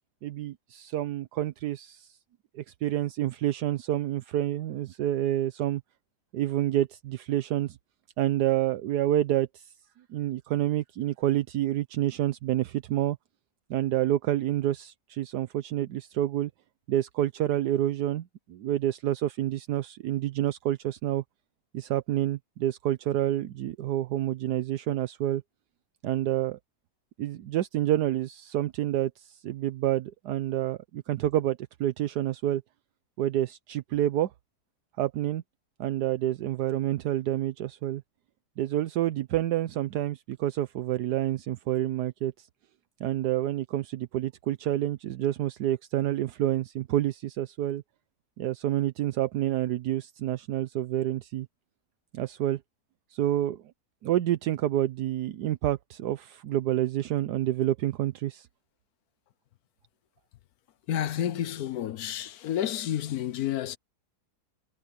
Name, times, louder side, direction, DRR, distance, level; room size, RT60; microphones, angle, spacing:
voice 1, 0.2-2.2 2.5-5.8 6.3-7.8 8.2-9.7 10.1-13.2 13.7-16.5 16.9-21.2 21.7-25.4 26.0-26.6 27.2-32.6 33.2-34.3 35.0-35.4 35.8-38.0 38.6-42.5 43.0-47.8 48.4-51.5 52.1-52.6 53.1-53.6 54.0-58.5, right 13 dB, 80° right, 1.3 m, -28 dB
voice 2, 60.9-63.8, left 11 dB, 70° left, 1.2 m, -30 dB
omnidirectional pair, 1.7 m